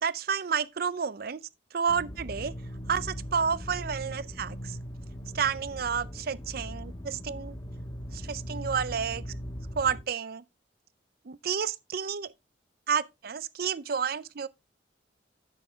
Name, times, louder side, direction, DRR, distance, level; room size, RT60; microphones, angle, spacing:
voice 1, 0.0-1.4 1.7-2.5 2.9-4.8 5.3-7.6 8.1-9.2 9.8-10.4 11.3-12.3 12.9-14.5, right 6 dB, 55° right, 0.5 m, -30 dB
sound 1, 1.9-10.0, equal, 20° left, 1.4 m, -39 dB
9.9 x 7.0 x 3.4 m
head